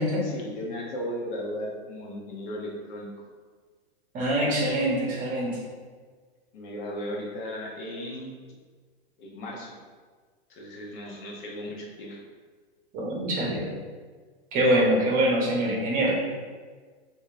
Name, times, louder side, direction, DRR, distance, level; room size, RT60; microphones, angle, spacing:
voice 1, 0.2-3.1 6.5-8.4 9.2-9.7 10.5-12.2, equal, 45° left, -1 dB, 0.9 m, -36 dB
voice 2, 4.1-5.6 12.9-13.7 14.5-16.2, right 1 dB, 25° right, -3 dB, 0.9 m, -24 dB
4.2 x 2.7 x 2.5 m, 1.5 s
hypercardioid pair, 130°, 32 cm